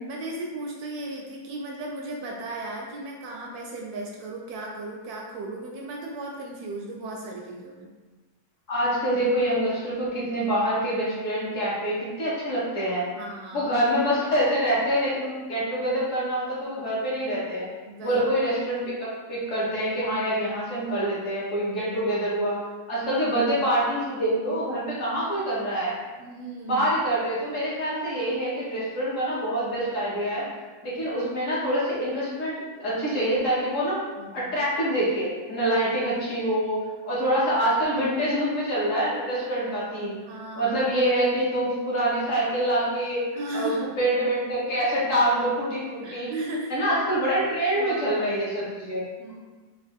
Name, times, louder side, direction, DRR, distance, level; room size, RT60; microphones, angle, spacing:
voice 1, 0.0-7.9 13.1-13.7 17.9-18.2 26.2-26.9 34.2-34.5 40.2-40.8 43.3-43.9 46.0-46.8 47.7-48.2 49.2-49.4, right 2 dB, 75° right, -1 dB, 1.0 m, -36 dB
voice 2, 8.7-13.1 13.5-17.7 18.0-22.6 22.9-26.0 26.6-30.4 30.8-34.0 34.3-36.8 37.0-40.2 40.6-43.2 43.5-46.3 46.7-49.0, right 1 dB, 55° left, -7 dB, 1.2 m, -25 dB
3.6 x 2.5 x 3.5 m, 1.3 s
omnidirectional pair, 1.8 m